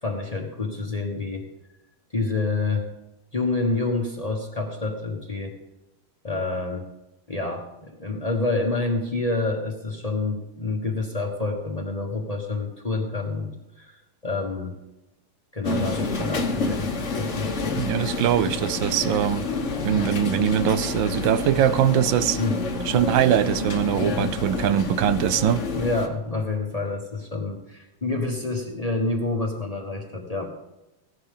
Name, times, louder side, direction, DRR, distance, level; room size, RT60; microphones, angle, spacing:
voice 1, 0.0-1.4 2.1-2.9 3.3-5.5 6.2-6.9 7.3-13.5 13.8-14.7 15.5-16.9 17.2-17.8 22.4-22.6 25.7-30.5, left 3 dB, 20° left, 2 dB, 1.1 m, -28 dB
sound 1, 15.6-26.1, left 3 dB, 40° left, 1.3 m, -28 dB
voice 2, 17.8-19.5 19.8-22.4 22.9-25.6, right 10 dB, 75° right, 15 dB, 1.2 m, -22 dB
15.5 x 11.5 x 3.7 m, 0.95 s
omnidirectional pair, 2.3 m